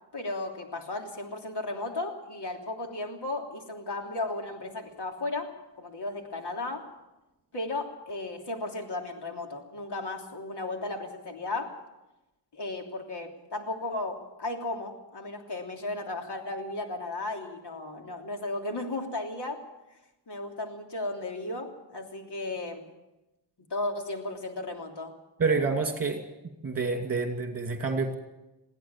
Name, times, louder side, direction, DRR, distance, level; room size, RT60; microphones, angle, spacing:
voice 1, 0.1-5.5 5.8-6.8 7.5-11.7 12.5-19.6 20.3-22.9 23.7-25.1, left 2 dB, 65° left, 2 dB, 3.2 m, -35 dB
voice 2, 25.4-26.2 26.6-28.1, right 4 dB, 35° right, 3 dB, 2.4 m, -28 dB
22.0 x 16.0 x 7.3 m, 0.99 s
wide cardioid pair, 110°, 44 cm